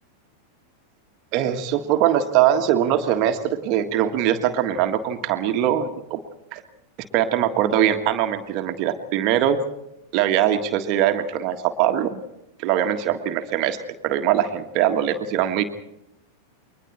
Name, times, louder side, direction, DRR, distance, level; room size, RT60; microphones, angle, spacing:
voice 1, 1.3-6.2 6.5-6.6 7.1-9.6 10.1-12.2 12.6-13.8 14.0-15.6, right 10 dB, 40° right, 6 dB, 1.6 m, -22 dB
30.0 x 22.5 x 4.4 m, 0.84 s
figure-of-eight pair, 90°, 0 cm